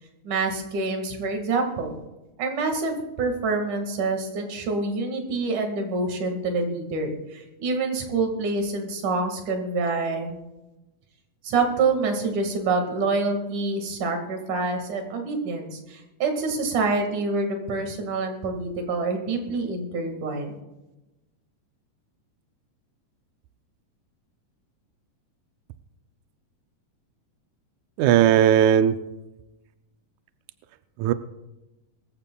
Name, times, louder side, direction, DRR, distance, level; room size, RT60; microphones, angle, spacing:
voice 1, 0.2-1.9 2.4-10.3 11.4-20.6, right 3 dB, 65° right, 4 dB, 3.2 m, -26 dB
voice 2, 28.0-28.9 31.0-31.1, right 10 dB, 80° right, 10 dB, 1.7 m, -17 dB
24.0 x 15.0 x 2.3 m, 1.0 s
omnidirectional pair, 3.9 m